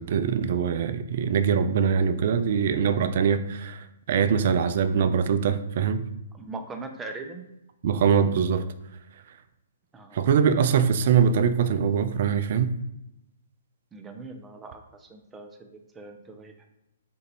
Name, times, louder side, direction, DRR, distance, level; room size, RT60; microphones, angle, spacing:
voice 1, 0.0-6.0 7.8-8.7 10.1-12.7, right 7 dB, 55° right, 12 dB, 0.3 m, -23 dB
voice 2, 6.4-7.4 9.9-10.2 13.9-16.7, right 3 dB, 15° right, 5 dB, 0.6 m, -41 dB
4.4 x 2.6 x 4.1 m, 0.86 s
figure-of-eight pair, 125°, 0 cm